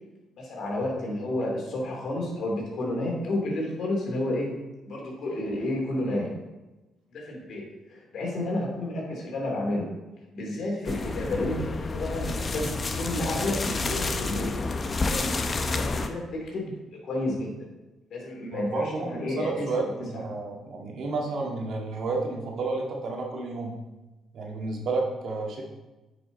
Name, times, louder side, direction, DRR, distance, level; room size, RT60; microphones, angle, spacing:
voice 1, 0.4-4.5 4.8-6.3 7.1-7.6 7.9-9.8 10.3-14.5 15.1-16.7 17.0-17.6 18.1-19.7, left 1 dB, 65° left, -1 dB, 2.9 m, -31 dB
sound 1, 10.9-16.1, left 3 dB, 35° left, 0.8 m, -29 dB
voice 2, 18.5-23.7 24.3-25.6, right 3 dB, 65° right, 0 dB, 1.9 m, -31 dB
9.4 x 5.5 x 4.0 m, 1.1 s
cardioid pair, 90°, 0 cm